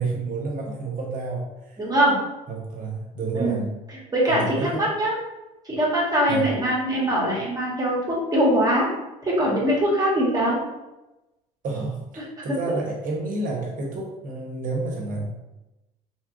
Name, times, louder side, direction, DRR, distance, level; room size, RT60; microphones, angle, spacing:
voice 1, 0.0-1.8 2.5-3.7 4.3-4.9 6.3-6.5 11.6-15.3, right 3 dB, 50° right, 0 dB, 1.0 m, -30 dB
voice 2, 1.8-2.2 3.3-3.6 3.9-5.1 5.6-8.9 9.2-10.6 12.4-12.6, right 1 dB, 20° right, -5 dB, 1.3 m, -22 dB
2.9 x 2.4 x 3.0 m, 0.99 s
supercardioid pair, 80°, 17 cm